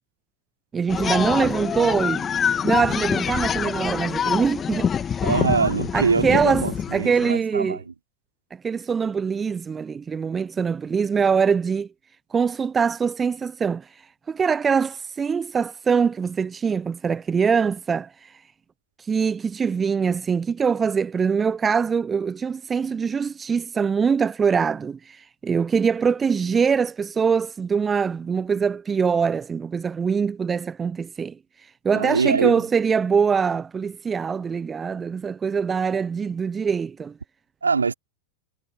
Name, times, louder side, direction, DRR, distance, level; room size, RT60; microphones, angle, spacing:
voice 1, 0.7-2.3 2.6-4.9 5.9-6.6 6.9-7.8 8.6-11.9 12.3-13.9 14.3-18.3 19.1-31.4 31.8-37.1, right 6 dB, 20° right, 0.9 m, -23 dB
sound 1, 0.9-7.3, left 7 dB, 20° left, 2.4 m, -25 dB
voice 2, 5.2-7.9 31.9-32.6 37.6-37.9, right 5 dB, 75° right, 3.9 m, -23 dB
figure-of-eight pair, 90°, 0 cm